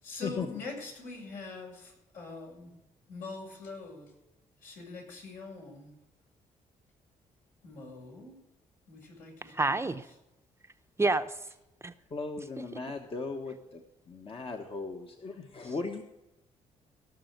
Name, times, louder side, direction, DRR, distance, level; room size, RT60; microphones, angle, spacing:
voice 1, 0.0-2.7 3.1-4.0 4.6-5.9 7.6-8.4 8.9-10.0, left 3 dB, 80° left, -1 dB, 6.7 m, -43 dB
voice 2, 9.4-10.1 11.0-11.5 11.8-11.9 12.6-12.7 15.6-15.7, right 2 dB, 20° right, 9 dB, 0.7 m, -29 dB
voice 3, 12.1-16.0, left 4 dB, 40° left, 4 dB, 1.3 m, -37 dB
18.0 x 6.4 x 8.0 m, 0.92 s
cardioid pair, 85°, 14 cm